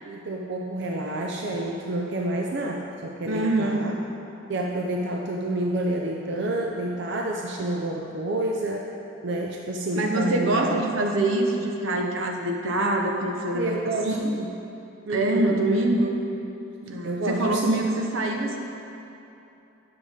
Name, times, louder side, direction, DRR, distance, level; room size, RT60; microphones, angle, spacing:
voice 1, 0.0-3.9 4.5-8.9 9.2-10.8 13.5-14.5 15.1-15.6 17.0-17.7, right 1 dB, 60° right, 0 dB, 0.6 m, -29 dB
voice 2, 3.3-3.9 9.9-13.8 14.1-14.3 15.1-16.2 16.8-18.6, right 2 dB, 85° right, 2 dB, 0.9 m, -24 dB
10.0 x 6.7 x 3.6 m, 2.9 s
head